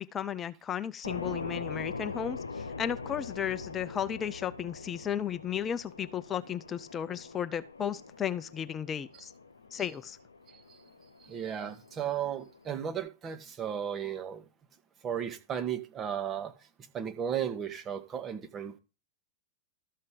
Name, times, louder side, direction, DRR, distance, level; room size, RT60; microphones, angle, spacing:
voice 1, 0.0-9.3 9.7-10.2, left 9 dB, 25° left, 0.6 m, -34 dB
sound 1, 1.0-13.0, left 4 dB, 85° left, 0.7 m, -43 dB
voice 2, 11.2-14.4 15.0-16.5 16.9-18.8, right 9 dB, 30° right, 1.7 m, -35 dB
13.0 x 5.6 x 5.0 m
figure-of-eight pair, 90°, 0 cm